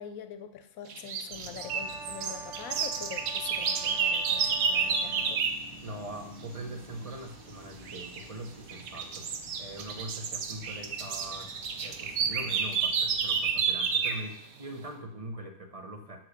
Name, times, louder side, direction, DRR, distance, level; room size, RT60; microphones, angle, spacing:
voice 1, 0.0-5.4, left 8 dB, 85° left, 9 dB, 1.1 m, -44 dB
sound 1, 0.9-5.6 7.9-8.2 8.7-14.3, right 6 dB, 85° right, 1.2 m, -30 dB
sound 2, 1.3-13.4, equal, 20° left, 1.7 m, -51 dB
Brass instrument, 1.6-5.4, right 5 dB, 65° right, 1.2 m, -46 dB
voice 2, 5.8-11.5 11.8-16.2, right 1 dB, 30° right, 4 dB, 0.9 m, -42 dB
7.1 x 5.9 x 6.6 m, 0.72 s
omnidirectional pair, 1.4 m